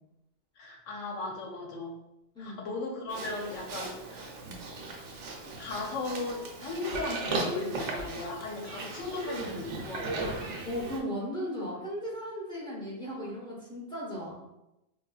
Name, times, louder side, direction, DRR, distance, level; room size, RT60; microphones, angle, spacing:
voice 1, 0.6-1.9 2.4-4.3 5.6-10.3, left 3 dB, 85° left, 1 dB, 1.0 m, -37 dB
voice 2, 2.3-2.7 8.9-9.1 10.6-14.4, equal, 5° left, -7 dB, 0.8 m, -36 dB
Livestock farm animals working animals, 3.1-11.0, right 2 dB, 75° right, 0.9 m, -37 dB
3.9 x 2.1 x 2.3 m, 0.90 s
omnidirectional pair, 1.2 m